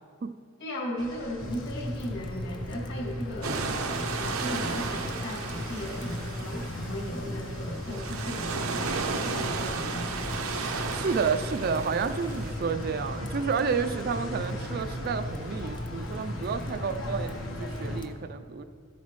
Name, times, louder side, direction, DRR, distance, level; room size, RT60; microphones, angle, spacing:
voice 1, 0.6-10.5, equal, 55° left, -2 dB, 2.3 m, -37 dB
sound 1, 1.0-18.0, left 1 dB, 70° left, 1.3 m, -41 dB
sound 2, 1.4-18.1, left 1 dB, 20° left, 0.4 m, -38 dB
sound 3, 3.4-12.5, right 4 dB, 90° right, 0.7 m, -34 dB
voice 2, 10.9-18.6, right 5 dB, 45° right, 9 dB, 0.4 m, -30 dB
14.0 x 8.1 x 3.1 m, 2.3 s
head